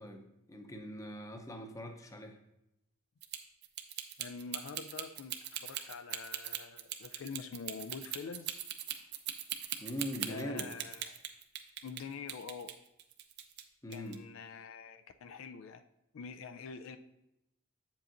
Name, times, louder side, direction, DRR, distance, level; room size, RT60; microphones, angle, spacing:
voice 1, 0.0-2.4 9.8-10.7 13.8-14.2, equal, 15° left, 4 dB, 0.6 m, -42 dB
sound 1, 3.2-12.0 12.3-13.6 13.9-14.1, right 11 dB, 50° right, 0.6 m, -40 dB
voice 2, 4.2-8.6 10.1-11.2 11.8-12.7 13.9-15.8 16.1-17.0, left 5 dB, 70° left, 9 dB, 0.4 m, -46 dB
8.1 x 7.4 x 2.6 m, 0.87 s
head